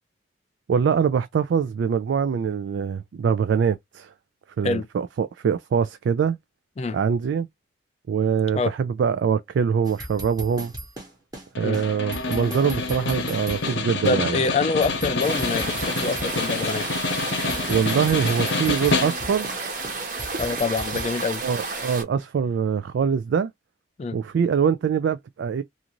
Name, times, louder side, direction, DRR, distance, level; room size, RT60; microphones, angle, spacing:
voice 1, 0.7-4.1 4.6-6.4 6.9-7.5 8.1-10.7 11.6-14.4 17.7-19.5 21.4-23.5 24.1-25.6, right 7 dB, 70° right, 0.3 m, -23 dB
sound 1, 9.8-11.5 11.7-11.9 12.1-14.2 14.4-16.5 16.7-16.9 17.1-19.6 19.8-21.1, right 1 dB, 20° right, 1.0 m, -37 dB
Snare drum, 11.5-19.5, left 3 dB, 75° left, 0.8 m, -28 dB
voice 2, 14.1-16.9 20.4-21.4 24.0-24.2, left 3 dB, 35° left, 0.3 m, -25 dB
sound 2, 15.2-22.0, right 3 dB, 45° right, 0.9 m, -31 dB
2.5 x 2.4 x 2.9 m
head